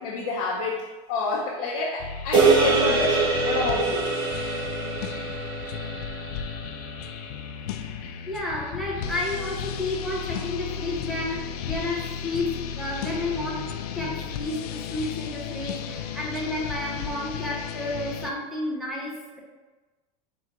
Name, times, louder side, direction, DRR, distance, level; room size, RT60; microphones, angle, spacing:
voice 1, 0.0-4.1, left 3 dB, 55° left, -4 dB, 0.7 m, -28 dB
sound 1, 2.0-18.3, left 7 dB, 90° left, 0.4 m, -34 dB
sound 2, 2.3-6.8, right 4 dB, 20° right, 1.0 m, -24 dB
voice 2, 8.0-13.6 14.0-19.4, left 2 dB, ahead, -4 dB, 0.5 m, -31 dB
3.9 x 2.4 x 4.5 m, 1.2 s
supercardioid pair, 175°, 19 cm